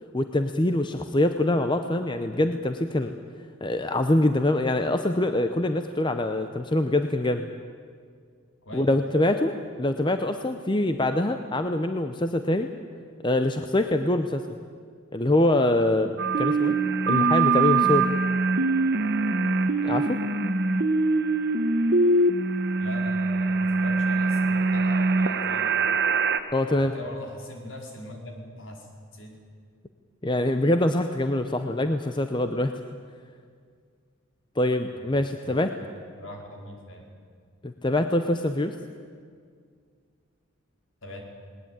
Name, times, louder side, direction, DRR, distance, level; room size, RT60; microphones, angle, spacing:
voice 1, 0.1-3.1 3.6-7.5 8.7-12.7 13.2-14.4 15.1-16.8 17.1-18.1 19.8-20.2 26.5-26.9 30.2-32.7 34.6-35.7 37.6-38.7, left 1 dB, 20° left, 7 dB, 0.7 m, -24 dB
sound 1, 16.2-26.4, right 3 dB, 50° right, 1.1 m, -23 dB
voice 2, 22.8-25.7 26.7-29.4 34.9-35.6 36.2-37.1 41.0-41.2, left 1 dB, 65° left, 1 dB, 4.3 m, -41 dB
19.5 x 19.5 x 9.1 m, 2.1 s
head